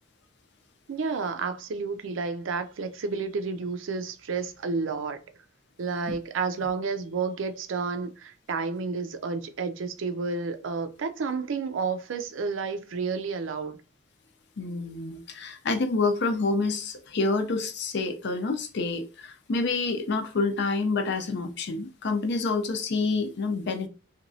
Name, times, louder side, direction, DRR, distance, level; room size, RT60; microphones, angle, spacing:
voice 1, 0.9-5.2 5.8-13.8, right 4 dB, 70° right, 0.4 m, -31 dB
voice 2, 14.6-23.9, left 3 dB, 60° left, 0.5 m, -28 dB
2.9 x 2.3 x 2.6 m
head